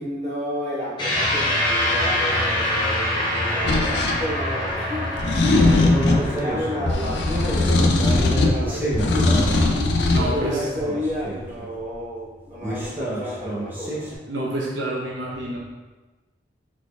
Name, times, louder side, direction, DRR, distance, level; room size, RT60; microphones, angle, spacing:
voice 1, 0.0-9.4 10.2-14.0, equal, 40° right, -8 dB, 1.4 m, -31 dB
sound 1, 1.0-9.7, left 1 dB, 25° left, 0.9 m, -26 dB
sound 2, 3.6-4.2 5.2-6.3 6.8-8.6 8.9-10.3, left 2 dB, 70° left, 0.5 m, -19 dB
sound 3, 5.6-7.0 7.4-7.5 7.8-9.9 10.2-11.9 12.6-14.1, right 1 dB, 10° right, 0.8 m, -29 dB
voice 2, 10.1-10.6 14.3-15.6, right 1 dB, 80° right, -4 dB, 0.7 m, -27 dB
4.8 x 4.1 x 2.4 m, 1.2 s
head